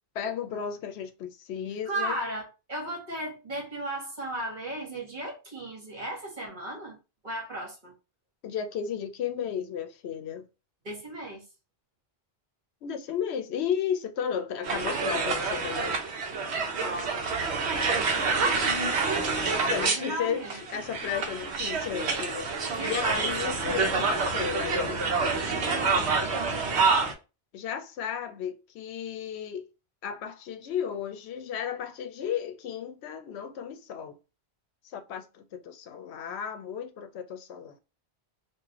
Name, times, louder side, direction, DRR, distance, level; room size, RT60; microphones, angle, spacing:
voice 1, 0.1-2.2 8.4-10.5 12.8-16.0 17.7-17.9 19.3-25.0 27.5-29.7 30.0-34.2 34.8-37.8, left 8 dB, 85° left, 0.9 m, -34 dB
voice 2, 1.8-7.0 7.2-7.9 10.8-11.4 16.8-17.3 19.8-20.6 22.7-23.3 25.7-26.1, right 1 dB, 45° right, 1.5 m, -35 dB
sound 1, 14.6-27.1, right 4 dB, 85° right, 1.1 m, -27 dB
3.2 x 2.7 x 3.6 m
omnidirectional pair, 1.1 m